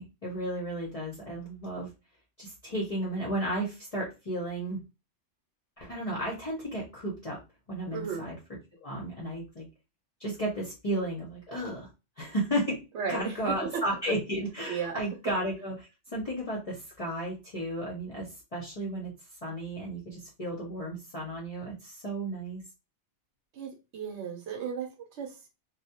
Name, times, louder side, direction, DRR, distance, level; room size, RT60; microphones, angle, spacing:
voice 1, 0.0-1.9 2.4-4.8 5.8-7.4 7.7-8.4 8.8-9.6 10.2-11.9 12.2-12.8 13.1-19.1 19.4-22.6, right 1 dB, 40° left, -3 dB, 0.6 m, -33 dB
voice 2, 7.9-8.3 12.9-13.8 14.7-15.0 23.5-25.5, right 6 dB, 70° right, 4 dB, 0.9 m, -35 dB
2.2 x 2.0 x 2.7 m, 0.28 s
omnidirectional pair, 1.2 m